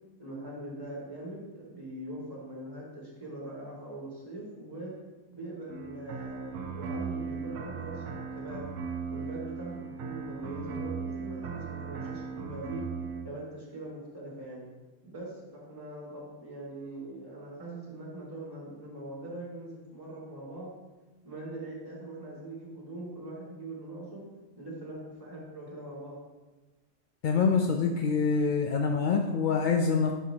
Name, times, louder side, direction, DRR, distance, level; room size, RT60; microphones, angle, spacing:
voice 1, 0.2-4.9 5.3-8.6 9.1-12.8 13.2-14.6 15.0-20.7 21.2-24.2 24.6-26.2, right 1 dB, 15° right, -5 dB, 2.3 m, -42 dB
sound 1, 5.7-13.2, right 5 dB, 80° right, 1.1 m, -37 dB
voice 2, 27.2-30.1, left 5 dB, 65° left, 2 dB, 0.5 m, -25 dB
10.5 x 5.8 x 2.9 m, 1.1 s
omnidirectional pair, 1.5 m